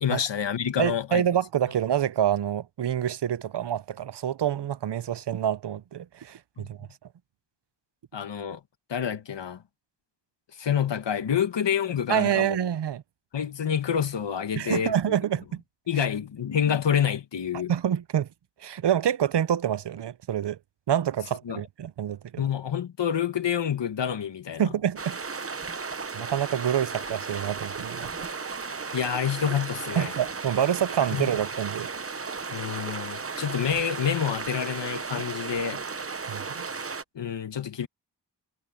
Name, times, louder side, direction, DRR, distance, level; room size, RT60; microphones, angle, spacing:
voice 1, 0.0-1.2 6.6-6.9 8.1-8.6 8.9-9.6 10.6-12.6 13.3-15.2 15.9-17.7 21.5-21.6 22.4-24.7 28.9-30.1 31.1-31.3 32.5-35.8 37.1-37.9, left 8 dB, 85° left, 1.3 m, -28 dB
voice 2, 0.8-6.9 12.1-13.0 14.6-15.6 16.0-16.1 17.7-18.3 18.6-20.6 20.9-22.5 24.6-25.2 26.1-28.1 30.0-31.9 36.3-36.6, right 9 dB, 70° right, 0.7 m, -27 dB
sound 1, 24.9-37.0, right 4 dB, 30° right, 0.9 m, -35 dB
wide cardioid pair, 80°, 42 cm